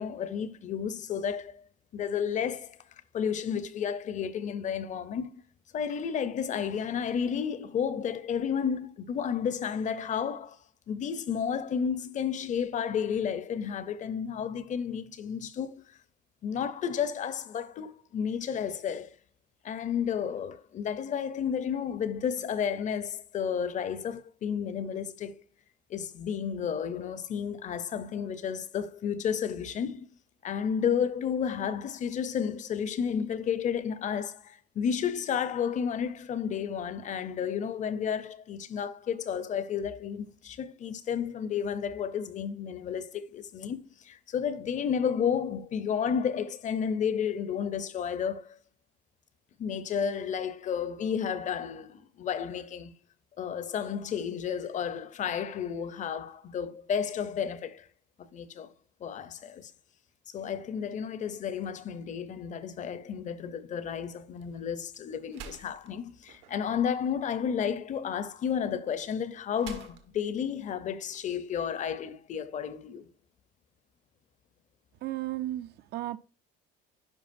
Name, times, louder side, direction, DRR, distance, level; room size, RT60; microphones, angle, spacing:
voice 1, 0.0-1.6 1.9-2.8 3.1-5.4 5.7-10.6 10.9-16.0 16.4-19.1 19.6-25.4 25.9-30.1 30.4-48.6 49.6-52.9 53.4-57.9 58.2-58.7 59.0-59.7 60.3-73.1, left 7 dB, 40° left, 0.7 m, -32 dB
sound 1, 63.5-71.7, right 7 dB, 75° right, 1.3 m, -52 dB
voice 2, 75.0-76.2, right 15 dB, 60° right, 0.6 m, -34 dB
10.5 x 4.9 x 2.6 m
cardioid pair, 115°, 19 cm